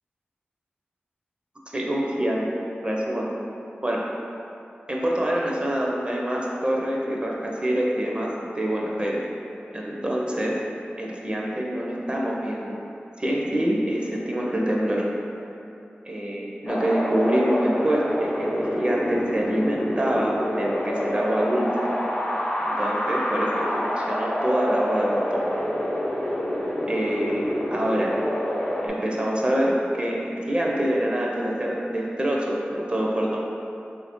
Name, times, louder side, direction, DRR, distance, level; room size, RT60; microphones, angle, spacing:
voice 1, 1.7-2.5 2.8-3.3 3.8-4.0 4.9-8.3 8.6-9.2 9.7-10.6 11.0-12.8 13.2-15.0 16.0-21.8 22.6-25.6 26.9-28.1 28.8-33.4, right 1 dB, 25° right, -3 dB, 0.4 m, -25 dB
Wind, 16.7-28.9, equal, 40° left, 0.6 m, -27 dB
3.1 x 2.5 x 3.5 m, 2.7 s
wide cardioid pair, 60°, 4 cm